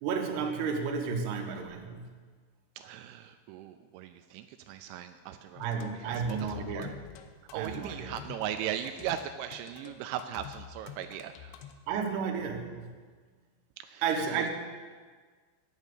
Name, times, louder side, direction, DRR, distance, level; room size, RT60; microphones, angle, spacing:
voice 1, 0.0-2.1 5.6-6.9 7.5-8.1 11.9-12.9 14.0-14.5, right 6 dB, 70° right, 2 dB, 2.9 m, -32 dB
voice 2, 2.8-5.6 6.0-6.9 7.5-11.6 13.8-14.5, right 10 dB, 85° right, 7 dB, 3.0 m, -38 dB
sound 1, 5.6-11.7, left 9 dB, 85° left, 2.9 m, -47 dB
10.5 x 7.3 x 8.1 m, 1.5 s
omnidirectional pair, 5.4 m